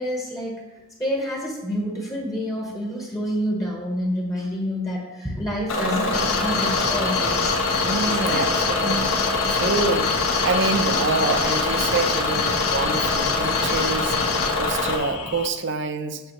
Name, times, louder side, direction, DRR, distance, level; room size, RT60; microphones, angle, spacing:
voice 1, 0.0-7.5 8.1-9.0, equal, 15° left, -1 dB, 1.1 m, -28 dB
Bus / Engine, 5.7-15.0, left 3 dB, 65° left, 1.2 m, -24 dB
sound 1, 6.1-15.5, left 6 dB, 90° left, 0.8 m, -28 dB
voice 2, 7.8-9.0 9.3-14.2 14.5-16.2, right 3 dB, 55° right, 8 dB, 0.6 m, -26 dB
7.7 x 6.7 x 3.1 m, 1.1 s
head